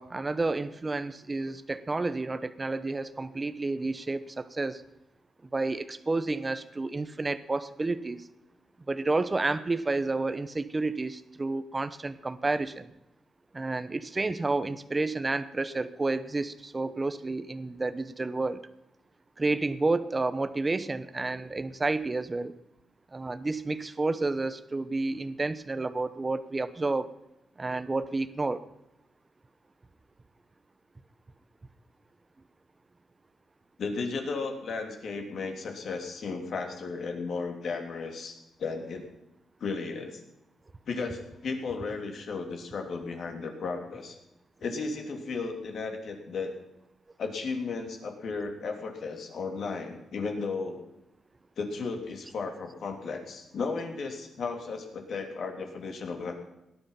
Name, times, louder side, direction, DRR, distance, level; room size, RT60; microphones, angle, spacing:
voice 1, 0.0-4.8 5.5-8.3 8.9-12.9 13.5-18.6 19.4-22.5 23.1-27.1 27.6-28.6, right 3 dB, 20° right, 14 dB, 0.9 m, -30 dB
voice 2, 33.8-39.1 39.6-40.2 40.9-44.2 44.6-46.5 47.2-50.8 51.6-56.4, left 4 dB, 60° left, 3 dB, 3.1 m, -34 dB
18.0 x 11.5 x 5.7 m, 0.90 s
cardioid pair, 110°, 0 cm